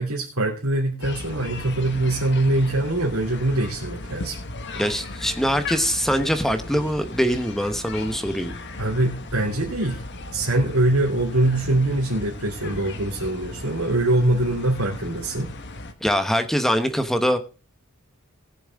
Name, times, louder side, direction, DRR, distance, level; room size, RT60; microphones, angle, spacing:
voice 1, 0.0-4.4 8.8-10.0 10.3-15.5, right 1 dB, 90° right, -5 dB, 2.8 m, -23 dB
sound 1, 1.0-15.9, left 2 dB, 55° left, 1.4 m, -36 dB
voice 2, 4.8-8.5 16.0-17.4, equal, ahead, 8 dB, 1.0 m, -23 dB
19.5 x 7.1 x 3.6 m, 0.33 s
head